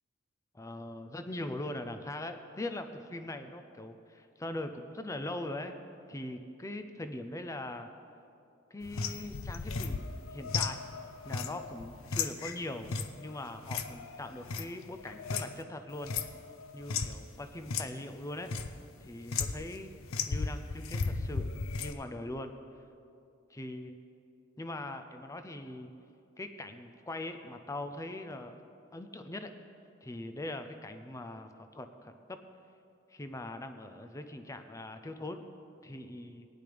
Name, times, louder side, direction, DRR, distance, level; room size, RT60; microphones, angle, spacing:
voice 1, 0.5-5.7 6.1-7.9 8.7-10.0 10.3-10.8 11.3-12.9 13.2-16.1 16.7-18.5 19.0-19.9 20.3-21.5 21.8-22.5 23.5-23.9 24.6-25.9 26.4-28.6 28.9-29.5 30.0-32.4 33.1-35.4 35.8-36.5, left 1 dB, 15° left, 7 dB, 0.5 m, -41 dB
sound 1, 8.8-15.6 15.9-17.2 17.6-17.9 18.2-18.7 19.3-19.8 20.1-21.9, left 5 dB, 90° left, 0.6 m, -35 dB
18.0 x 10.0 x 3.4 m, 2.6 s
head